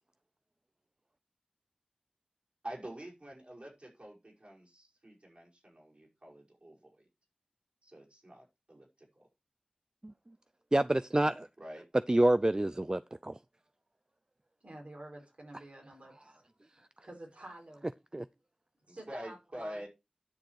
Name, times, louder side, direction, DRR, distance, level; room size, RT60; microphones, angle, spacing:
voice 1, 2.6-7.0 7.8-8.9 9.2-9.3 11.6-11.8 18.9-19.9, equal, 60° right, 5.3 m, -47 dB
voice 2, 10.7-11.5 12.1-13.4 18.1-18.3, right 1 dB, 35° right, 0.4 m, -27 dB
voice 3, 14.6-16.3 17.0-17.8 18.9-19.9, right 1 dB, 75° right, 5.0 m, -49 dB
10.5 x 6.6 x 4.6 m
wide cardioid pair, 45°, 2 cm